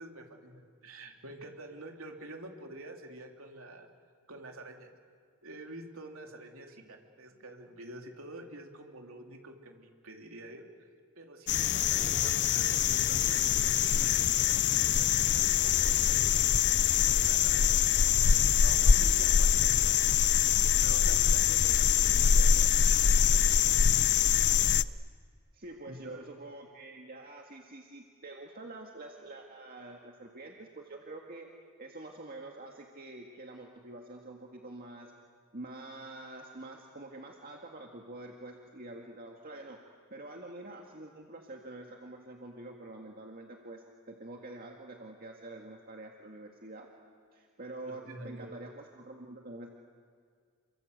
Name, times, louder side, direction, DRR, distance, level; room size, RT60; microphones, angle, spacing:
voice 1, 0.0-3.9 4.3-4.9 5.4-10.7 11.2-16.5 17.0-20.0 20.8-23.4 25.9-26.3 47.8-48.5, right 1 dB, 65° right, 3 dB, 3.3 m, -48 dB
sound 1, 11.5-24.8, left 8 dB, 50° left, 0.6 m, -24 dB
voice 2, 25.5-31.5 31.8-35.1 35.5-39.8 40.1-46.9 47.3-49.7, right 2 dB, 45° right, 1 dB, 2.0 m, -46 dB
29.0 x 23.5 x 8.2 m, 2.1 s
head